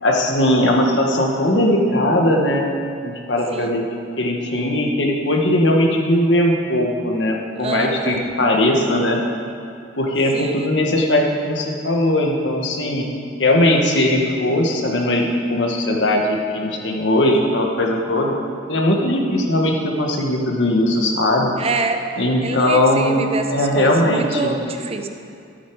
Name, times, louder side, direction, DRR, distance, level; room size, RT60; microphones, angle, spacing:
voice 1, 0.0-2.7 3.0-3.8 4.2-9.2 10.0-13.1 13.4-21.5 22.2-24.6, left 1 dB, 70° left, 1 dB, 1.5 m, -19 dB
voice 2, 3.5-3.9 7.6-8.2 10.3-10.7 21.6-22.0 22.4-25.1, right 3 dB, 35° right, 5 dB, 0.7 m, -26 dB
13.0 x 8.4 x 4.8 m, 2.4 s
head